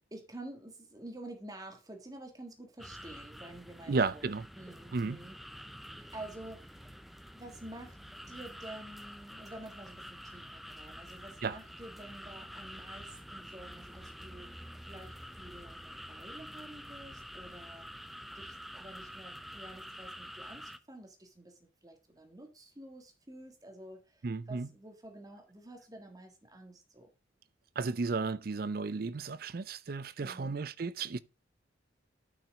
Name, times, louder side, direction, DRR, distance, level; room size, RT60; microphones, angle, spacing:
voice 1, 0.1-4.2 4.5-5.3 6.0-6.9 7.3-8.0 8.3-14.5 14.8-17.9 18.2-27.1 30.2-30.6, right 1 dB, 20° right, 1.6 m, -49 dB
sound 1, 2.8-20.8, equal, ahead, 0.5 m, -48 dB
voice 2, 3.9-4.5 4.9-5.2 11.4-11.6 24.2-24.7 27.8-31.2, right 4 dB, 50° right, 0.5 m, -33 dB
10.0 x 6.1 x 3.6 m
head